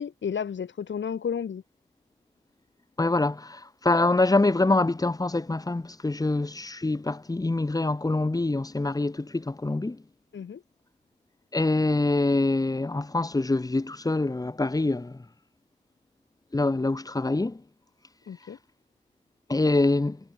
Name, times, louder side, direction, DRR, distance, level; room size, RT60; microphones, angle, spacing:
voice 1, 0.0-1.6 10.3-10.6 18.3-18.6, left 7 dB, 75° left, 4.2 m, -32 dB
voice 2, 3.0-10.0 11.5-15.2 16.5-17.6 19.5-20.2, left 2 dB, 20° left, 1.1 m, -25 dB
cardioid pair, 60°, 19 cm